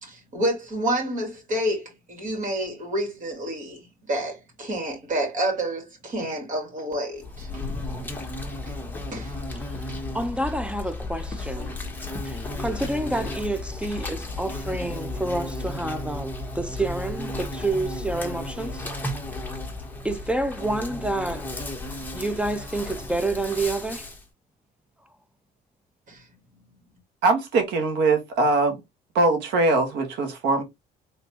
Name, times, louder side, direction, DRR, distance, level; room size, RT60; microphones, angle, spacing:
voice 1, 0.0-7.6 8.6-8.8 9.1-9.3 9.9-10.0 26.1-26.2, right 1 dB, 50° right, 2.8 m, -29 dB
Insect, 7.2-24.2, left 2 dB, 10° left, 1.2 m, -34 dB
voice 2, 9.6-11.8 12.2-18.9 20.0-21.5 22.1-24.1, right 2 dB, 5° right, 0.4 m, -29 dB
voice 3, 27.2-28.8 29.1-30.6, right 3 dB, 85° right, 1.6 m, -21 dB
3.8 x 3.6 x 2.9 m
cardioid pair, 110°, 17 cm